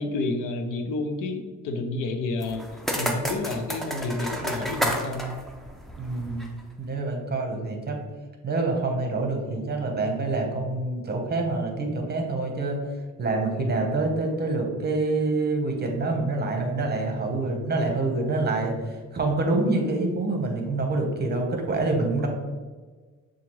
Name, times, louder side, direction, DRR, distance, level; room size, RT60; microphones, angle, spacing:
voice 1, 0.0-2.6 3.0-5.4, left 2 dB, 85° left, 6 dB, 0.6 m, -30 dB
Kicking a beer can, 2.4-6.6, equal, ahead, 0.6 m, -31 dB
voice 2, 6.0-6.5 6.8-8.0 8.4-12.8 13.2-22.3, right 2 dB, 30° right, 2 dB, 1.0 m, -26 dB
6.8 x 2.5 x 3.0 m, 1.4 s
cardioid pair, 100°, 31 cm